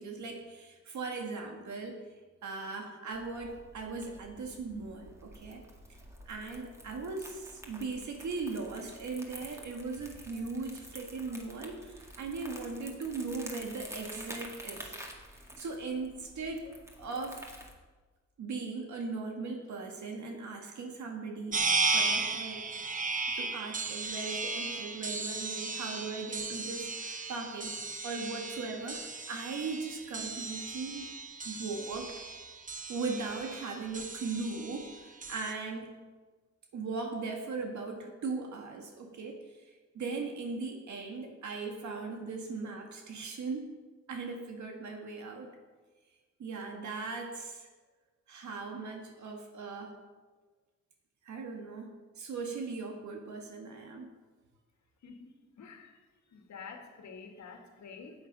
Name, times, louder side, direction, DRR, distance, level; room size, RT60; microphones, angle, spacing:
voice 1, 0.0-2.0 2.4-5.6 6.3-15.0 15.6-16.7 17.0-17.6 18.4-21.6 21.9-22.7 23.4-31.1 31.4-32.1 32.9-35.9 36.7-43.7 44.1-45.5 46.4-47.7 48.3-49.9 51.2-54.1, right 4 dB, 75° right, 2 dB, 1.8 m, -39 dB
Crumpling crinkling, 3.1-17.7, equal, 10° right, 1.9 m, -49 dB
sound 1, 21.5-35.5, right 3 dB, 25° right, 0.9 m, -35 dB
voice 2, 55.6-55.9 56.3-58.1, left 5 dB, 70° left, 4 dB, 2.0 m, -48 dB
14.5 x 8.9 x 5.4 m, 1.3 s
wide cardioid pair, 150°, 29 cm